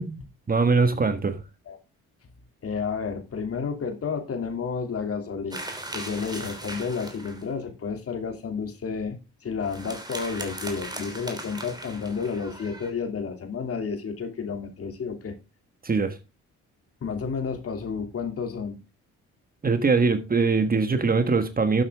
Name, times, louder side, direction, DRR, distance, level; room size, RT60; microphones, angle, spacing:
voice 1, 0.0-1.4 15.8-16.2 19.6-21.8, right 4 dB, 30° right, 1.5 m, -22 dB
voice 2, 2.6-9.2 9.4-15.4 17.0-18.8, left 5 dB, 50° left, 2.8 m, -31 dB
sound 1, 5.5-7.5 9.6-12.9, right 2 dB, 15° right, 3.2 m, -38 dB
12.0 x 8.1 x 3.6 m
cardioid pair, 90°, 30 cm